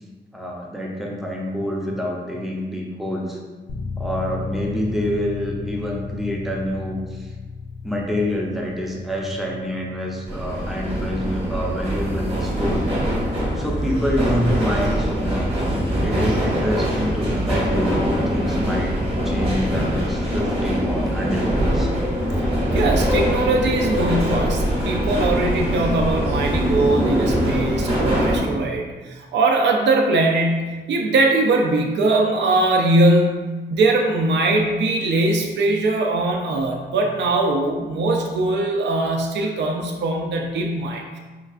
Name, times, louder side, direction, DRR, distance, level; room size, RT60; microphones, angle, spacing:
voice 1, 0.3-3.4 4.0-7.3 7.8-12.9 13.5-15.5 16.0-18.9 19.2-21.9, equal, ahead, -2 dB, 0.5 m, -27 dB
sound 1, 3.7-20.4, left 4 dB, 70° left, 0.4 m, -37 dB
sound 2, 10.3-28.4, equal, 30° right, 0.9 m, -22 dB
voice 2, 22.7-41.2, right 2 dB, 75° right, 1 dB, 0.4 m, -21 dB
4.4 x 2.3 x 2.4 m, 1.3 s
wide cardioid pair, 150°, 18 cm